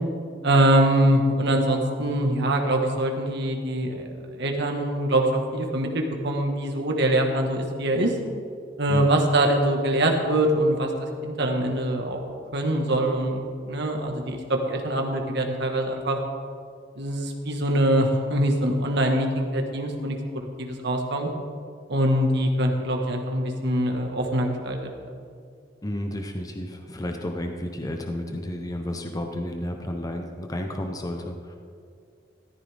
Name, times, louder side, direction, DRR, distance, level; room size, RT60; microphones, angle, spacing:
voice 1, 0.4-8.1 8.8-12.2 12.5-16.2 16.9-20.2 20.6-21.3 21.9-24.9, right 1 dB, 65° right, 2 dB, 1.6 m, -23 dB
voice 2, 25.8-31.6, left 1 dB, 20° left, 4 dB, 0.8 m, -32 dB
14.5 x 13.5 x 3.5 m, 2.3 s
head